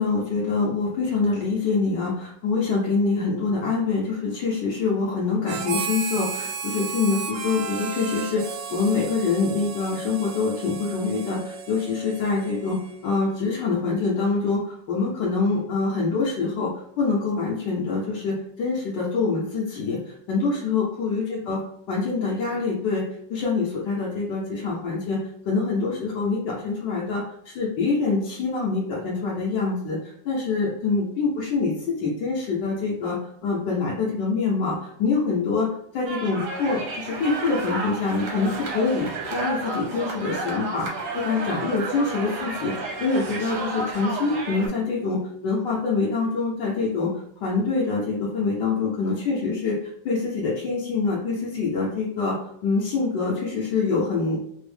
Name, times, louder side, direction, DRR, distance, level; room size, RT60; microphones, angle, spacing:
voice 1, 0.0-14.6 14.9-16.7 17.0-20.0 20.3-21.6 21.9-23.0 23.3-25.2 25.5-31.7 32.0-35.7 35.9-40.9 41.1-42.7 43.0-47.1 47.4-49.8 50.0-52.4 52.6-54.4, left 4 dB, 75° left, -6 dB, 1.3 m, -25 dB
Harmonica, 5.5-13.2, right 6 dB, 85° right, 1.3 m, -34 dB
sound 1, 36.1-44.7, right 3 dB, 60° right, 0.8 m, -32 dB
3.5 x 2.0 x 3.2 m, 0.73 s
omnidirectional pair, 2.0 m